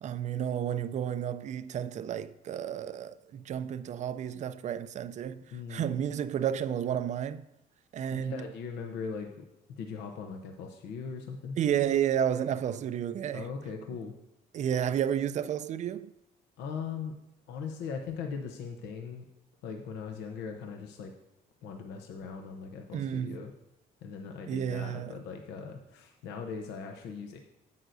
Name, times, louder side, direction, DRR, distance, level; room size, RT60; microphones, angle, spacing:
voice 1, 0.0-7.4 7.9-8.4 11.6-13.5 14.5-16.1 22.9-23.4 24.5-25.2, right 9 dB, 45° right, 0.4 m, -31 dB
voice 2, 5.5-6.0 8.1-11.6 13.3-14.1 16.6-17.1 17.5-19.3 19.6-21.1 21.6-23.5 24.0-27.4, left 5 dB, 85° left, 0.9 m, -40 dB
11.0 x 7.8 x 2.6 m
cardioid pair, 110°, 17 cm